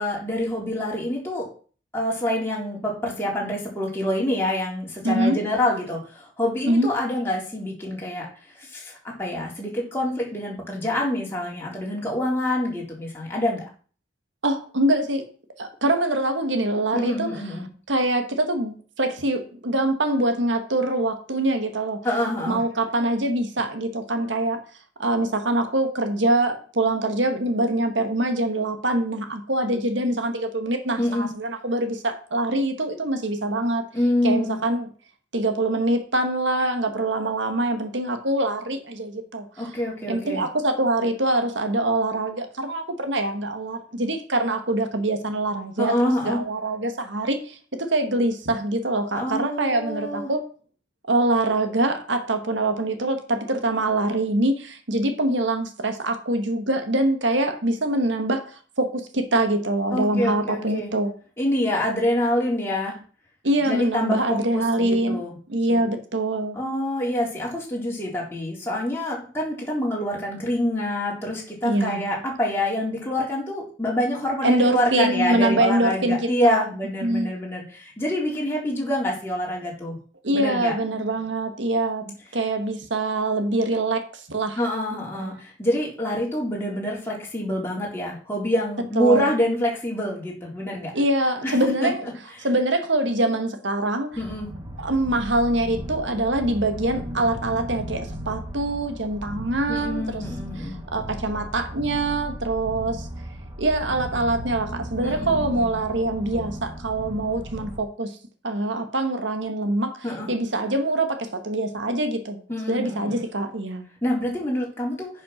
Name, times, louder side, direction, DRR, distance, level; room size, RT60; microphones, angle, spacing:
voice 1, 0.0-1.4 1.9-8.3 8.6-13.6 16.9-17.7 22.0-22.6 31.0-31.3 33.9-34.6 39.6-40.4 45.8-46.4 49.1-50.3 59.9-60.9 61.4-63.0 63.6-65.4 66.5-80.0 80.3-80.7 84.6-90.9 91.4-91.9 94.2-94.5 99.7-100.8 105.0-105.8 110.0-110.3 112.5-113.2 114.0-115.1, left 1 dB, 15° left, -3 dB, 3.7 m, -26 dB
voice 2, 5.0-5.4 6.7-6.9 14.4-15.3 15.6-17.4 17.9-22.0 22.5-24.6 25.0-33.9 34.2-34.9 35.3-39.5 40.1-45.9 46.2-50.5 51.1-58.4 58.8-61.1 63.4-65.2 65.5-66.6 71.6-72.1 74.4-76.6 77.0-77.3 80.2-84.6 84.9-85.3 88.9-89.3 90.9-92.1 92.4-94.2 94.8-100.2 100.9-103.1 103.6-108.2 108.4-112.4 112.7-113.9, right 1 dB, 80° right, 7 dB, 1.7 m, -24 dB
sound 1, 94.1-107.8, equal, 20° right, 1.3 m, -36 dB
10.0 x 6.0 x 5.8 m, 0.41 s
head